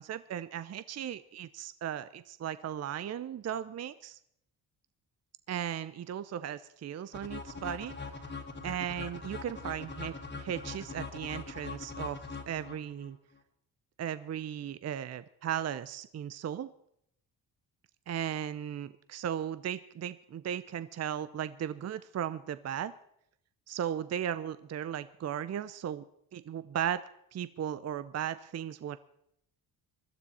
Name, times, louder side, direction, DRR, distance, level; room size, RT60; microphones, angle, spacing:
voice 1, 0.0-4.2 5.5-7.9 8.6-12.2 12.5-13.2 14.0-16.7 18.1-22.9 23.7-26.0 26.3-27.0 27.3-29.0, right 10 dB, 40° right, 14 dB, 0.6 m, -36 dB
sound 1, 7.1-13.1, left 4 dB, 30° left, 2.2 m, -42 dB
21.0 x 12.5 x 4.2 m, 0.73 s
cardioid pair, 100°, 40 cm